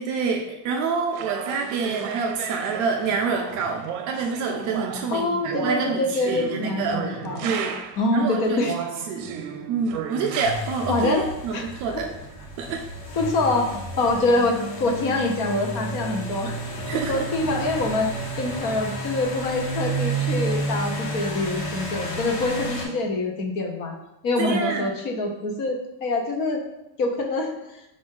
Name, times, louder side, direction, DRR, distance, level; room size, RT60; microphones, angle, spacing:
voice 1, 0.0-7.8 8.1-8.6 9.1-9.3 9.7-12.1 12.6-12.8 16.9-17.3 24.4-24.9, right 5 dB, 40° right, 2 dB, 0.4 m, -27 dB
sound 1, 1.1-8.1 8.6-10.5, right 8 dB, 75° right, 0.7 m, -34 dB
voice 2, 5.1-7.5 8.0-8.7 10.9-11.2 11.5-12.0 13.2-16.6 16.9-24.0 24.2-26.6 27.0-27.8, left 2 dB, 40° left, 2 dB, 0.7 m, -25 dB
sound 2, 10.4-22.9, right 1 dB, 80° left, 1.3 m, -31 dB
5.3 x 2.5 x 3.7 m, 0.90 s
cardioid pair, 155°, 49 cm